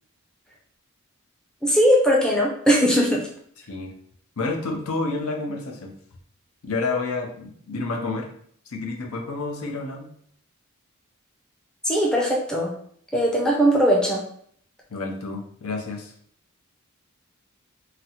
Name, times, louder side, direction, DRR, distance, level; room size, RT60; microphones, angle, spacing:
voice 1, 1.6-3.2 11.8-12.7 13.1-14.2, equal, 5° left, -3 dB, 0.5 m, -19 dB
voice 2, 4.4-5.9 6.6-8.3 8.7-10.1 14.9-16.1, left 3 dB, 70° left, 2 dB, 0.6 m, -29 dB
4.0 x 2.0 x 2.8 m, 0.62 s
head